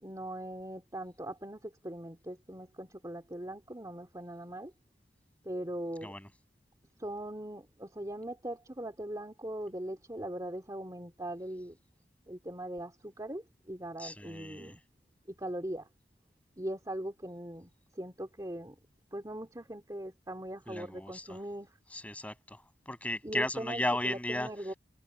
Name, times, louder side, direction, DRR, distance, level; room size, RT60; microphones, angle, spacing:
voice 1, 0.0-4.7 5.4-6.1 7.0-11.8 12.3-14.8 15.3-15.9 16.6-18.7 19.1-21.8 23.2-24.7, right 1 dB, 20° right, 2.8 m, -40 dB
voice 2, 14.0-14.7 20.7-21.4 21.9-22.6 22.9-24.5, left 1 dB, 10° left, 7.1 m, -35 dB
head